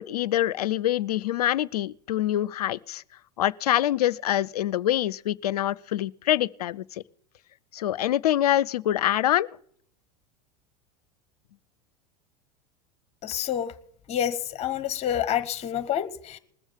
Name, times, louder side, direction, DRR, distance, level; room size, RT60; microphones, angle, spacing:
voice 1, 0.0-3.0 3.4-6.8 7.7-9.5, left 12 dB, 75° left, 0.5 m, -25 dB
voice 2, 13.2-13.7 14.1-16.4, left 10 dB, 30° left, 1.0 m, -28 dB
20.0 x 7.1 x 7.2 m
hypercardioid pair, 85°, 20 cm